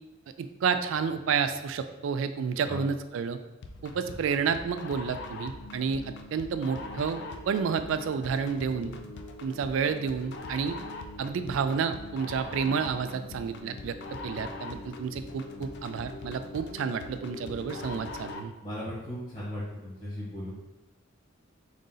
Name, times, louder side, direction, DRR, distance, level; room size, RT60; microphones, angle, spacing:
voice 1, 0.4-3.4 3.8-7.2 7.5-8.9 9.4-10.8 11.2-14.0 14.2-18.5, right 6 dB, 75° right, 10 dB, 0.3 m, -30 dB
sound 1, 3.6-18.6, left 2 dB, 60° left, 0.4 m, -42 dB
voice 2, 18.6-20.5, left 1 dB, 35° left, -11 dB, 1.4 m, -37 dB
3.9 x 2.5 x 3.8 m, 1.0 s
head